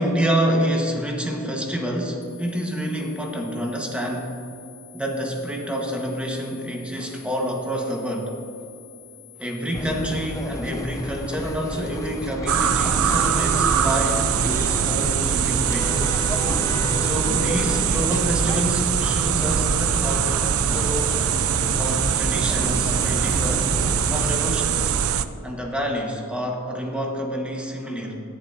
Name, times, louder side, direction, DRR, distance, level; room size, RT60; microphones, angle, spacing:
voice 1, 0.0-4.4 4.9-8.3 9.4-15.9 16.9-20.4 20.7-21.2 21.8-23.7 24.1-24.9 25.4-28.1, equal, 5° right, 0 dB, 1.3 m, -27 dB
sound 1, 2.2-12.2, left 13 dB, 85° left, 2.6 m, -48 dB
sound 2, 9.7-24.3, left 1 dB, 15° left, 0.6 m, -30 dB
sound 3, 12.5-25.3, right 8 dB, 80° right, 0.5 m, -22 dB
17.5 x 11.0 x 2.7 m, 2.6 s
head